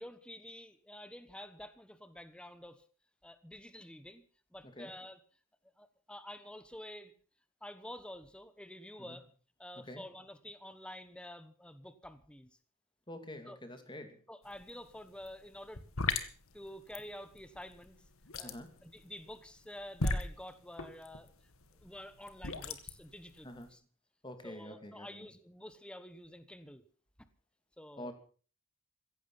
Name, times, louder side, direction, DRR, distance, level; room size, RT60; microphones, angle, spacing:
voice 1, 0.0-2.8 3.2-4.2 4.5-5.2 5.8-7.1 7.6-9.3 9.6-12.6 13.5-13.8 14.3-15.8 16.5-18.0 18.4-21.3 21.8-23.8 24.4-26.8 27.8-28.1, left 1 dB, 5° left, 11 dB, 1.2 m, -49 dB
voice 2, 13.1-14.2 18.4-18.7 23.4-23.7 24.2-25.3 28.0-28.1, left 1 dB, 20° left, 7 dB, 2.7 m, -46 dB
sound 1, 14.5-14.7 14.9-23.7, left 3 dB, 80° left, 2.0 m, -38 dB
16.5 x 15.5 x 5.7 m, 0.41 s
head